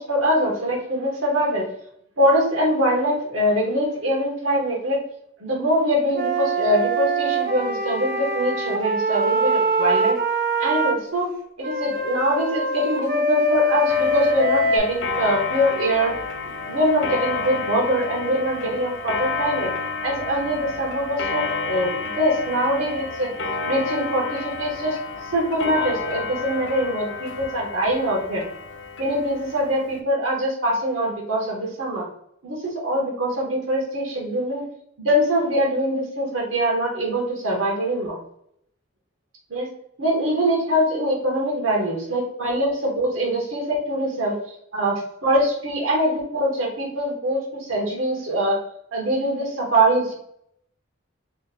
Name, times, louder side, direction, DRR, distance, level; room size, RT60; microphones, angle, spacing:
voice 1, 0.1-1.7 2.2-5.0 5.4-10.2 10.6-11.3 11.6-16.1 16.7-19.7 20.0-23.3 23.7-25.0 25.3-28.4 29.0-32.1 32.4-34.7 35.0-38.2 39.5-39.7 40.0-44.4 44.7-48.6 48.9-50.1, equal, 90° right, -2 dB, 1.0 m, -23 dB
Wind instrument woodwind instrument, 6.1-11.0 11.6-14.8, right 1 dB, 45° right, 0.4 m, -23 dB
Clock, 13.9-30.0, left 4 dB, 60° left, 0.4 m, -30 dB
3.0 x 2.2 x 4.0 m, 0.72 s
head